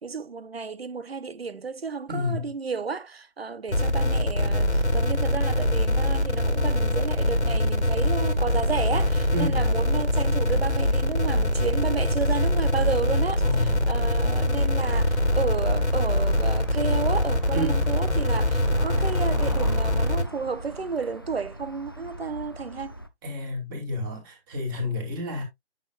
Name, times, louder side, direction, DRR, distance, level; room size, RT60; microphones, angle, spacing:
voice 1, 0.0-22.9, right 5 dB, 65° right, 1.0 m, -32 dB
voice 2, 2.1-2.5 9.3-9.7 13.4-13.9 17.5-17.9 23.2-25.4, left 2 dB, 20° right, 2.7 m, -30 dB
sound 1, 3.7-20.2, left 1 dB, 85° left, 2.0 m, -23 dB
sound 2, 14.4-23.1, right 1 dB, 20° left, 0.4 m, -41 dB
8.8 x 6.6 x 2.4 m
figure-of-eight pair, 145°, 33 cm